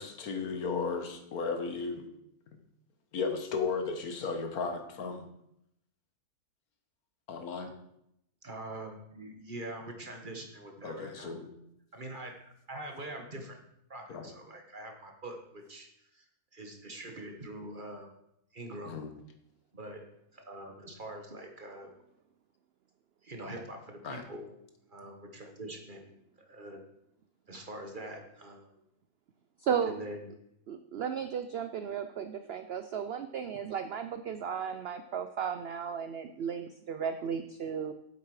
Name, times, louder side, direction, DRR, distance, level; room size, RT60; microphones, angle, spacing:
voice 1, 0.0-2.1 3.1-5.3 7.3-7.7 10.8-11.5 14.1-14.3 18.8-19.1 24.0-24.2, left 4 dB, 70° left, 6 dB, 1.6 m, -35 dB
voice 2, 8.4-11.4 11.9-13.6 13.9-16.2 16.5-18.2 18.5-19.0 19.7-20.0 20.3-21.9 23.2-24.6 24.9-26.8 27.5-28.8 29.8-30.3, right 1 dB, 35° right, 3 dB, 1.2 m, -44 dB
voice 3, 29.6-30.0 30.7-37.9, right 7 dB, 75° right, 9 dB, 0.5 m, -34 dB
8.1 x 7.8 x 4.8 m, 0.77 s
omnidirectional pair, 1.7 m